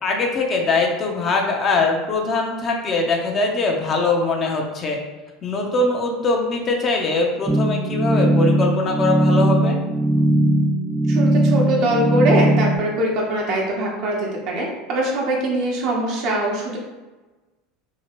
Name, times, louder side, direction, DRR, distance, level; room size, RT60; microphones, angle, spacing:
voice 1, 0.0-5.0 5.4-9.8, left 3 dB, 35° left, 1 dB, 0.6 m, -22 dB
sound 1, 7.5-12.8, right 1 dB, 15° right, 0.3 m, -18 dB
voice 2, 11.1-16.8, right 1 dB, 55° right, -1 dB, 0.9 m, -22 dB
2.9 x 2.8 x 2.9 m, 1.2 s
supercardioid pair, 105°, 0 cm